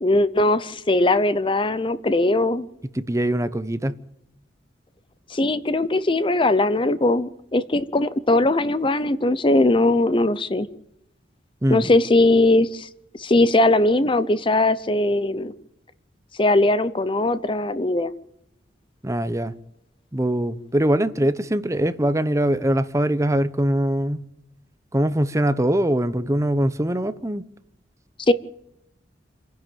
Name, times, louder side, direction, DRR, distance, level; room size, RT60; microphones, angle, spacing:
voice 1, 0.0-2.7 5.3-10.7 11.7-12.9 13.1-15.5 16.4-18.1 28.3-28.4, left 2 dB, 25° left, 0.7 m, -20 dB
voice 2, 2.9-4.0 11.6-11.9 19.0-19.5 20.1-24.2 24.9-27.4, right 1 dB, 15° right, 0.8 m, -22 dB
28.0 x 10.5 x 9.2 m
head